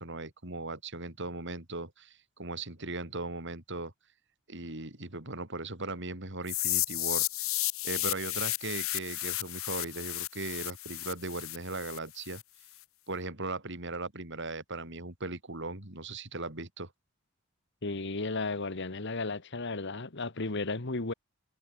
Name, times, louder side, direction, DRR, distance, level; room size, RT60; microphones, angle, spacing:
voice 1, 0.0-3.9 4.5-12.4 13.1-16.9, right 3 dB, 60° right, 4.4 m, -38 dB
sound 1, 6.5-12.4, left 17 dB, 85° left, 1.9 m, -33 dB
voice 2, 17.8-21.1, left 3 dB, 60° left, 1.6 m, -34 dB
head